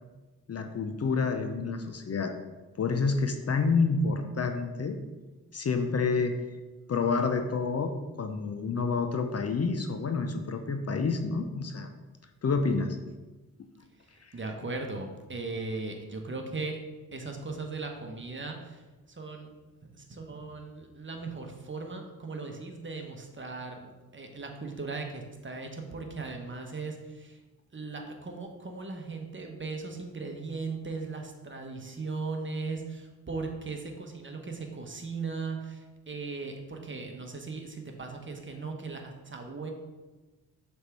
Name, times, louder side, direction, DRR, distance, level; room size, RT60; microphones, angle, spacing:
voice 1, 0.5-2.3 2.8-5.0 5.5-6.4 6.9-7.9 8.2-11.9 12.4-13.0 13.6-13.7 14.2-14.3, left 4 dB, 40° left, 6 dB, 0.7 m, -28 dB
voice 2, 14.1-16.8 17.1-18.8 19.1-19.5 19.9-27.4 27.7-39.7, right 3 dB, 30° right, 3 dB, 1.2 m, -38 dB
6.4 x 3.6 x 4.6 m, 1.2 s
supercardioid pair, 55°, 38 cm